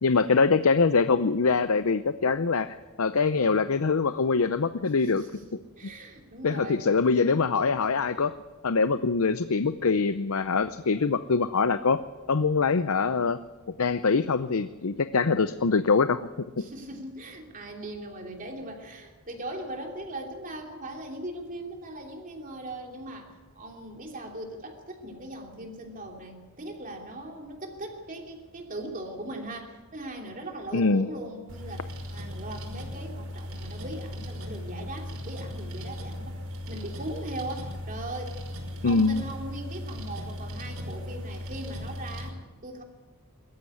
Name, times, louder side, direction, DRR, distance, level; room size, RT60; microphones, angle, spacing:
voice 1, 0.0-5.3 6.4-8.3 8.6-12.0 12.3-13.4 13.8-16.3 30.7-31.1 38.8-39.2, left 4 dB, 75° left, 12 dB, 0.7 m, -24 dB
voice 2, 5.7-6.8 16.6-36.3 36.7-38.4 38.8-42.8, right 1 dB, 40° right, 1 dB, 3.1 m, -39 dB
sound 1, 31.5-42.3, left 1 dB, 90° right, 5.4 m, -37 dB
22.0 x 14.5 x 9.7 m, 1.2 s
head